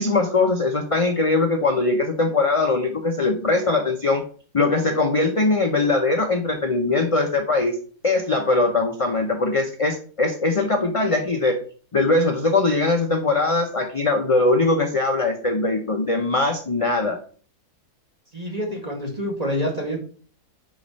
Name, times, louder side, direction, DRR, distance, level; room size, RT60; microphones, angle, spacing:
voice 1, 0.0-4.2 4.5-7.8 8.0-11.6 11.9-17.2, left 3 dB, 35° left, 3 dB, 0.5 m, -21 dB
voice 2, 18.3-20.0, equal, 25° right, 0 dB, 1.8 m, -27 dB
5.4 x 5.1 x 5.3 m, 0.42 s
omnidirectional pair, 1.7 m